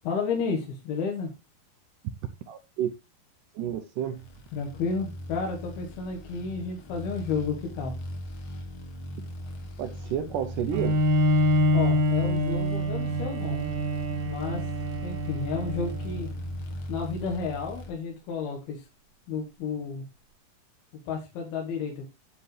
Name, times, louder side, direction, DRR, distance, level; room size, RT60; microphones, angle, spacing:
voice 1, 0.0-1.3 4.5-7.9 11.7-13.7 14.2-14.7 15.0-16.3 16.9-18.9 19.3-20.0 21.1-22.1, left 5 dB, 80° left, 3.3 m, -32 dB
voice 2, 2.5-2.9 3.6-4.3 9.8-11.0, right 9 dB, 75° right, 2.0 m, -30 dB
sound 1, 4.1-17.9, equal, 55° left, 2.0 m, -39 dB
Bowed string instrument, 10.7-16.4, equal, 50° right, 2.0 m, -26 dB
9.8 x 8.2 x 3.2 m
omnidirectional pair, 4.5 m